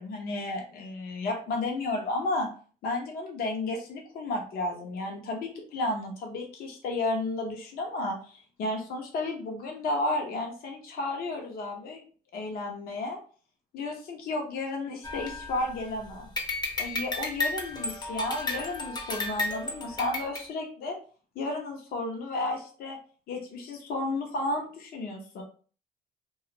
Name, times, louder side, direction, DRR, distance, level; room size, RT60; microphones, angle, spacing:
voice 1, 0.0-2.5 2.8-12.0 12.3-13.2 13.7-16.3 16.8-21.0 21.3-23.0 23.3-25.4, left 2 dB, 60° left, 2 dB, 0.8 m, -32 dB
sound 1, 15.0-15.9 16.4-20.4, left 2 dB, 25° left, 0.6 m, -33 dB
2.4 x 2.3 x 2.9 m, 0.40 s
cardioid pair, 110°, 17 cm